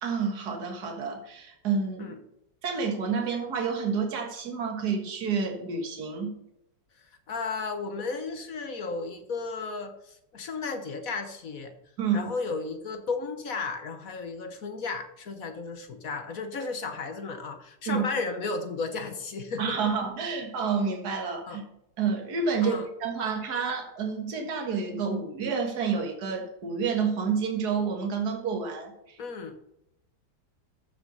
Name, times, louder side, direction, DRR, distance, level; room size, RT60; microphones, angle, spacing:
voice 1, 0.0-2.1 2.6-6.4 12.0-12.3 17.9-18.1 19.6-21.6 22.0-29.2, right 5 dB, 60° right, 2 dB, 2.2 m, -29 dB
voice 2, 7.0-11.7 12.1-19.8 21.5-21.6 22.6-22.9 29.2-29.6, left 4 dB, 50° left, 7 dB, 1.5 m, -34 dB
14.0 x 5.8 x 5.4 m, 0.82 s
omnidirectional pair, 2.0 m